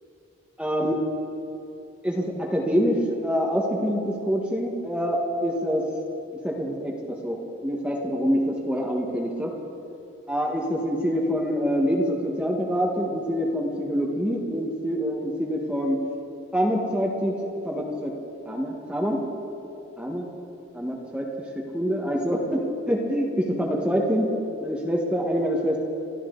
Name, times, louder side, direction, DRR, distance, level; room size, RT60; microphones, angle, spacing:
voice 1, 0.6-1.0 2.0-5.8 6.4-9.5 10.3-16.0 16.5-17.4 17.6-18.1 18.4-19.2 20.0-20.3 20.7-21.3 21.5-22.6 22.9-24.3 24.6-25.8, equal, 5° right, -1 dB, 1.4 m, -25 dB
26.5 x 13.0 x 3.9 m, 2.8 s
head